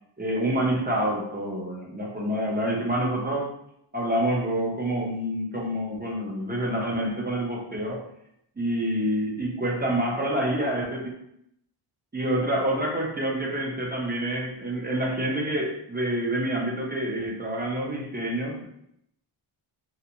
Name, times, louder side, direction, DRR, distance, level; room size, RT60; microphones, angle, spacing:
voice 1, 0.2-3.5 3.9-8.1 8.6-11.1 12.1-18.7, right 1 dB, 20° right, -2 dB, 0.6 m, -27 dB
2.4 x 2.1 x 2.8 m, 0.75 s
wide cardioid pair, 85°, 50 cm